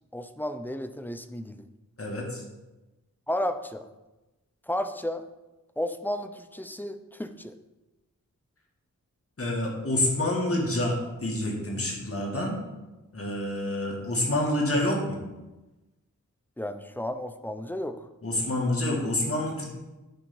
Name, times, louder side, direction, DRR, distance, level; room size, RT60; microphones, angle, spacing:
voice 1, 0.1-1.7 3.3-3.9 4.7-5.2 5.8-7.6 16.6-18.1, left 1 dB, 5° left, 9 dB, 0.6 m, -33 dB
voice 2, 2.0-2.4 9.4-12.6 13.1-15.2 18.2-19.8, left 1 dB, 45° left, -1 dB, 2.2 m, -28 dB
9.9 x 3.7 x 5.5 m, 1.1 s
wide cardioid pair, 70°, 31 cm